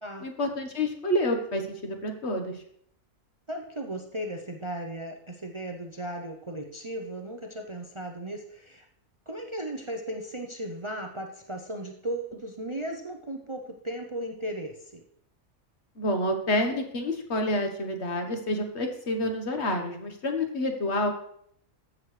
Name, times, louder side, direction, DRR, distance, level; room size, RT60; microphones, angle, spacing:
voice 1, 0.2-2.6 15.9-21.1, left 1 dB, 50° left, 4 dB, 1.6 m, -28 dB
voice 2, 3.5-8.9 9.3-15.0, right 1 dB, 30° right, 3 dB, 0.6 m, -36 dB
14.5 x 6.6 x 3.2 m, 0.68 s
omnidirectional pair, 1.5 m